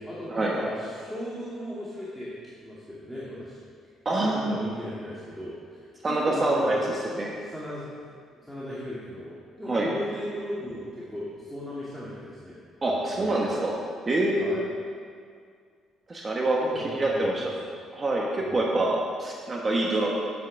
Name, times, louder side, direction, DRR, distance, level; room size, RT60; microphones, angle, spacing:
voice 1, 0.0-3.6 4.1-6.8 7.4-8.0 8.3-12.6 12.9-13.6 14.4-14.6 16.6-17.8 18.4-19.0, equal, ahead, -9 dB, 2.0 m, -37 dB
voice 2, 4.0-4.6 6.0-7.3 9.6-9.9 12.8-13.7 14.1-14.6 16.1-17.5 17.9-20.1, right 2 dB, 25° right, -2 dB, 1.2 m, -26 dB
9.3 x 8.4 x 5.3 m, 2.1 s
cardioid pair, 115°, 0 cm